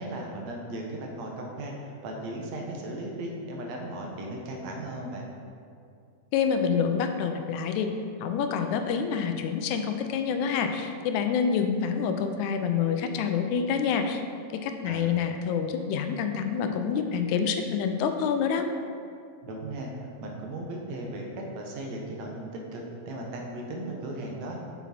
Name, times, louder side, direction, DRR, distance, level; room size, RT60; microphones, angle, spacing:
voice 1, 0.0-5.3 14.8-15.1 19.4-24.6, right 1 dB, 70° right, 0 dB, 2.1 m, -37 dB
voice 2, 6.3-7.9 8.2-14.2 14.5-18.7, left 6 dB, 85° left, 6 dB, 2.0 m, -27 dB
7.2 x 7.2 x 4.2 m, 2.4 s
omnidirectional pair, 3.4 m